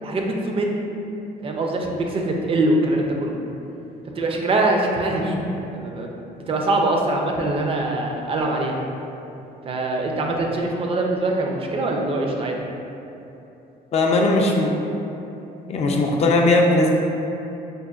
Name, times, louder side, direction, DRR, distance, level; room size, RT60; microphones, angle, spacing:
voice 1, 0.0-0.8 1.4-3.4 4.2-5.4 5.7-6.1 6.5-8.8 9.6-12.6, right 2 dB, 35° right, 1 dB, 0.4 m, -23 dB
voice 2, 13.9-14.8 15.7-16.9, left 2 dB, 40° left, 0 dB, 0.4 m, -18 dB
5.2 x 2.2 x 2.3 m, 2.9 s
cardioid pair, 110°, 17 cm